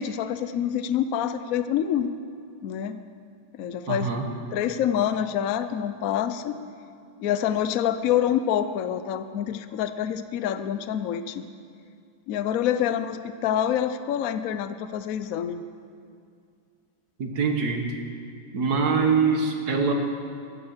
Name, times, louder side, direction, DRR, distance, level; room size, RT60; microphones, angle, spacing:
voice 1, 0.0-2.1 2.6-3.0 3.5-4.1 4.5-6.6 7.2-11.5 12.3-15.7, left 9 dB, 80° left, 11 dB, 0.7 m, -26 dB
voice 2, 3.9-4.3 17.2-17.9 18.5-19.9, right 5 dB, 50° right, 3 dB, 1.9 m, -24 dB
15.0 x 11.5 x 7.2 m, 2.3 s
omnidirectional pair, 2.2 m